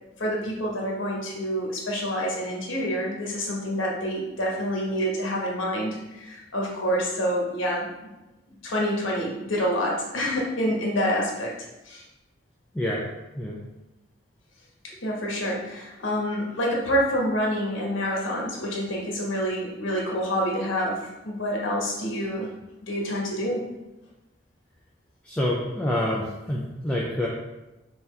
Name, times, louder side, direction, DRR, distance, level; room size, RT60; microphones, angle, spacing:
voice 1, 0.2-8.1 8.6-11.5 11.8-12.0 15.0-22.5 22.8-23.6, equal, 80° left, -2 dB, 1.1 m, -27 dB
voice 2, 25.2-27.3, left 1 dB, 5° left, -4 dB, 0.4 m, -27 dB
5.6 x 2.9 x 3.3 m, 1.0 s
head